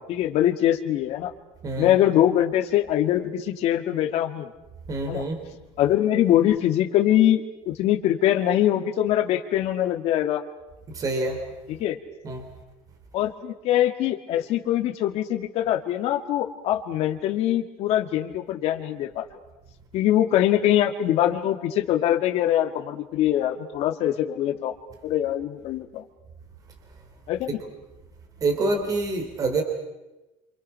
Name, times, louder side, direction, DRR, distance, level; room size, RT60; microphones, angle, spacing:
voice 1, 0.0-1.3 1.8-4.5 5.1-5.2 5.8-10.4 11.7-12.0 13.1-19.2 19.9-24.7 25.0-26.0 27.3-27.6, left 12 dB, 55° left, 5 dB, 2.1 m, -23 dB
voice 2, 1.6-2.0 4.9-5.4 10.9-11.4 12.2-12.5 28.4-29.6, right 2 dB, 25° right, 4 dB, 3.6 m, -26 dB
28.0 x 27.5 x 5.8 m, 1.0 s
cardioid pair, 165°, 13 cm